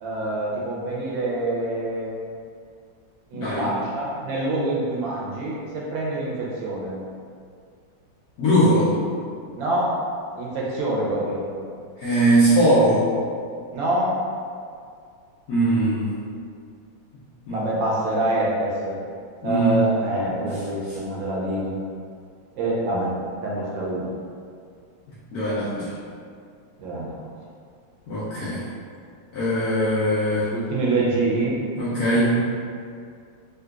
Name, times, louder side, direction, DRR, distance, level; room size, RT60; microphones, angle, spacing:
voice 1, 0.0-2.1 3.3-7.0 9.6-9.9 10.4-11.4 13.7-14.2 17.5-18.9 19.4-21.7 22.6-23.1 23.4-24.1 26.8-27.2 30.5-31.6, right 1 dB, 75° right, -4 dB, 1.3 m, -25 dB
voice 2, 3.3-3.7 8.4-9.0 12.0-13.0 15.5-16.1 17.5-17.6 19.4-19.8 25.3-25.9 28.1-28.6 29.3-30.5 31.8-32.5, right 1 dB, 70° left, -10 dB, 0.9 m, -20 dB
3.7 x 2.4 x 2.3 m, 2.3 s
omnidirectional pair, 2.1 m